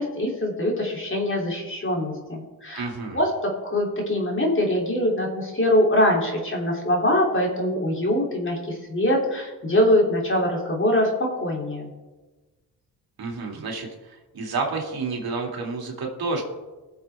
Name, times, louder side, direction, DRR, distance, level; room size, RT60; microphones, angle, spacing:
voice 1, 0.0-2.9 3.1-11.9, left 1 dB, 30° left, -1 dB, 3.4 m, -23 dB
voice 2, 2.7-3.2 13.2-16.4, right 3 dB, 65° right, 0 dB, 2.7 m, -30 dB
21.0 x 7.2 x 3.7 m, 1.2 s
cardioid pair, 75°, 40 cm